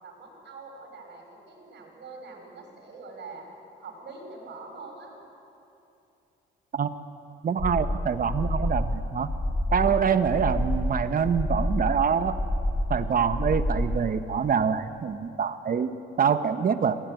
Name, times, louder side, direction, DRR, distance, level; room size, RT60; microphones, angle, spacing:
voice 1, 0.0-3.5 3.8-5.1, right 3 dB, 60° right, 1 dB, 6.3 m, -44 dB
voice 2, 7.4-9.3 9.7-12.4 12.9-17.0, right 7 dB, 45° right, 10 dB, 1.3 m, -25 dB
sound 1, 7.6-14.0, left 1 dB, 25° left, 3.3 m, -28 dB
22.0 x 17.5 x 9.3 m, 2.8 s
cardioid pair, 90°, 20 cm